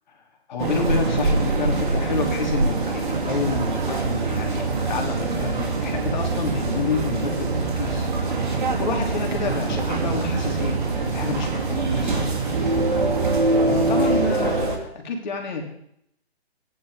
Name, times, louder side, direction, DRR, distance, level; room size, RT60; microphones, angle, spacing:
voice 1, 0.5-8.1 8.4-12.4 12.7-13.1 13.4-15.6, left 4 dB, 45° left, 2 dB, 3.1 m, -29 dB
sound 1, 0.6-14.8, right 3 dB, 45° right, 2.7 m, -24 dB
sound 2, 1.1-10.6, right 2 dB, 30° right, 4.4 m, -46 dB
sound 3, 3.3-14.3, right 6 dB, 5° right, 1.7 m, -32 dB
15.0 x 10.5 x 5.0 m, 0.74 s
hypercardioid pair, 155°, 32 cm